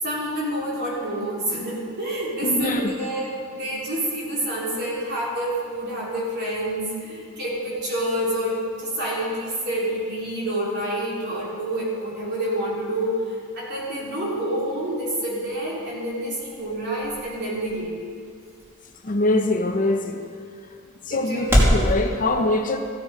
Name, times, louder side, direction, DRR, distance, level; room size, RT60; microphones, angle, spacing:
voice 1, 0.0-18.0 21.1-21.4 21.7-21.9, right 1 dB, 55° right, -5 dB, 3.8 m, -28 dB
voice 2, 2.4-2.9 19.0-20.2 21.1-22.8, left 2 dB, 40° left, 5 dB, 0.8 m, -23 dB
sound 1, 15.6-21.9, equal, 10° right, 2.6 m, -28 dB
15.5 x 9.3 x 5.0 m, 2.3 s
head